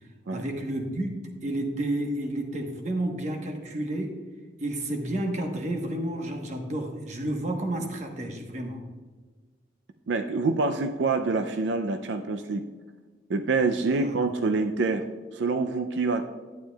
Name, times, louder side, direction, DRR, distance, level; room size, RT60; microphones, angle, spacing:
voice 1, 0.3-4.2 4.6-8.8 13.9-14.3, right 1 dB, 40° right, 3 dB, 1.1 m, -31 dB
voice 2, 10.1-12.6 13.3-15.1 15.3-16.2, right 3 dB, 80° right, 7 dB, 0.4 m, -26 dB
11.5 x 9.2 x 2.3 m, 1.4 s
head